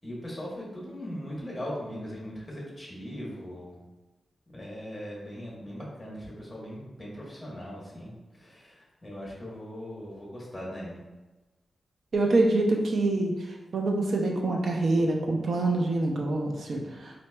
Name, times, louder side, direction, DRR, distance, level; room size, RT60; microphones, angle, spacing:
voice 1, 0.0-3.8 4.5-11.0, equal, 20° left, -4 dB, 1.2 m, -39 dB
voice 2, 12.1-13.3 13.7-17.3, right 2 dB, 65° right, 0 dB, 0.6 m, -25 dB
4.1 x 2.8 x 2.2 m, 1.1 s
wide cardioid pair, 100°, 0 cm